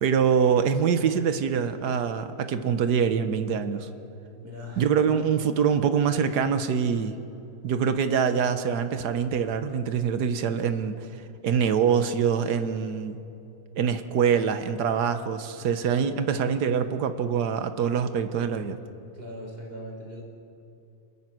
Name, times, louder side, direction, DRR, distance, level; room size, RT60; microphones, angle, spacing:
voice 1, 0.0-3.9 4.8-7.2 7.6-11.1 11.4-13.2 13.8-18.8, right 7 dB, 85° right, 9 dB, 1.6 m, -24 dB
voice 2, 4.4-5.1 15.6-16.1 19.1-20.2, equal, 35° right, -1 dB, 5.0 m, -41 dB
28.5 x 21.0 x 6.1 m, 2.7 s
omnidirectional pair, 1.7 m